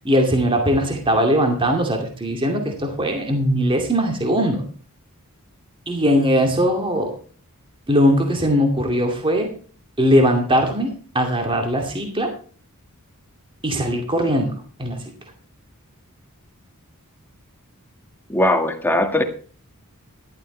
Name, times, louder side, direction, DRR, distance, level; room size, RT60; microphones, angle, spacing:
voice 1, 0.0-4.6 5.9-7.1 7.9-9.5 10.0-10.9 11.1-12.3 13.6-14.5 14.8-15.0, equal, 25° right, 3 dB, 2.4 m, -20 dB
voice 2, 18.3-19.2, left 1 dB, 10° left, 4 dB, 1.8 m, -19 dB
14.0 x 12.0 x 3.3 m, 0.41 s
head